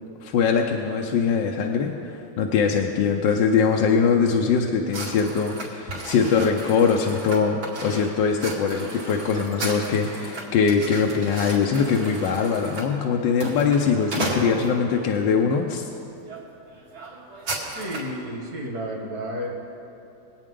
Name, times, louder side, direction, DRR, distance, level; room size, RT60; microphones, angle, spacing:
voice 1, 0.2-15.8, left 6 dB, 70° left, 2 dB, 1.3 m, -22 dB
sound 1, 4.9-15.1 15.7-15.9 16.2-16.4 16.7-18.2, right 2 dB, 75° right, 3.0 m, -35 dB
voice 2, 17.7-19.5, equal, 50° right, -1 dB, 2.3 m, -31 dB
23.0 x 8.9 x 3.8 m, 2.8 s
omnidirectional pair, 2.1 m